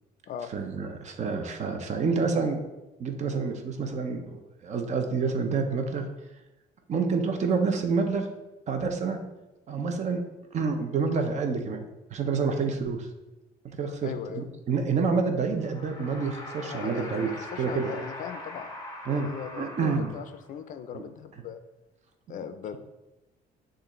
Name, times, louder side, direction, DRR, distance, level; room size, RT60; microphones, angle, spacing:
voice 1, 0.5-2.6 3.0-6.1 6.9-8.3 8.7-9.2 9.7-10.2 10.5-11.8 12.1-13.1 13.8-17.3 17.6-17.9 19.1-19.3 19.6-20.1 20.9-21.0 22.3-22.4, right 5 dB, 45° right, 5 dB, 0.6 m, -28 dB
voice 2, 14.0-14.4 16.7-18.7 19.1-21.6 22.3-22.8, left 8 dB, 50° left, 10 dB, 0.4 m, -39 dB
sound 1, 15.5-20.6, left 1 dB, 20° left, 0.8 m, -42 dB
6.5 x 2.5 x 3.0 m, 1.0 s
cardioid pair, 110°, 17 cm